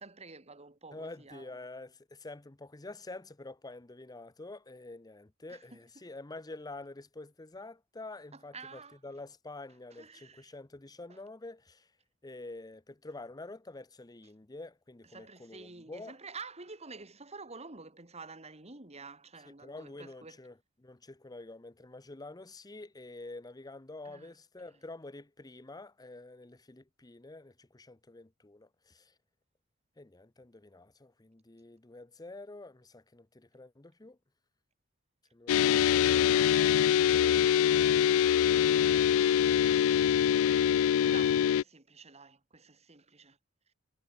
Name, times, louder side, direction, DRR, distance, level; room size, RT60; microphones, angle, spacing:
voice 1, 0.0-1.6 5.5-5.8 8.3-9.0 9.9-10.5 11.1-11.2 15.1-20.4 24.0-24.3 38.4-38.8 39.1-39.9 40.6-43.4, right 4 dB, 30° right, 3.1 m, -49 dB
voice 2, 0.9-11.9 12.2-16.2 19.6-29.1 30.0-34.2, left 2 dB, 20° left, 0.7 m, -47 dB
sound 1, 35.5-41.6, left 9 dB, 85° left, 0.3 m, -24 dB
head